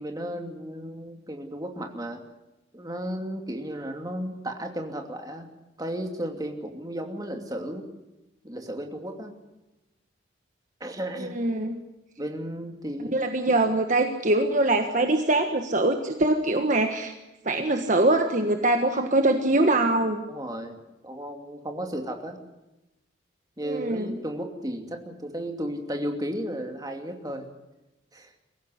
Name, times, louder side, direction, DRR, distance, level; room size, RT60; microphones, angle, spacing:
voice 1, 0.0-2.2 2.7-5.5 5.8-7.9 8.4-9.3 10.8-11.3 12.2-13.2 20.3-22.4 23.6-27.4 28.1-28.3, equal, 20° right, 3 dB, 2.7 m, -34 dB
voice 2, 11.2-11.8 13.1-17.1 17.4-20.2 23.7-24.2, right 2 dB, 40° right, 5 dB, 1.4 m, -23 dB
24.0 x 15.5 x 9.7 m, 0.98 s
head